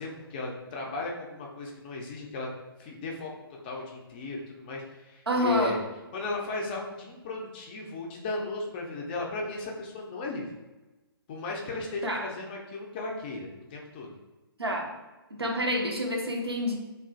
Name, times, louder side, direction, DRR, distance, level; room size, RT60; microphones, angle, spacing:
voice 1, 0.0-2.5 2.8-3.3 3.6-5.8 6.1-10.5 11.3-14.1, left 3 dB, 25° left, -1 dB, 0.4 m, -36 dB
voice 2, 5.3-5.8 12.0-12.2 14.6-14.9 15.3-16.8, equal, 90° right, 1 dB, 0.6 m, -28 dB
3.0 x 2.4 x 2.4 m, 1.1 s
figure-of-eight pair, 130°, 13 cm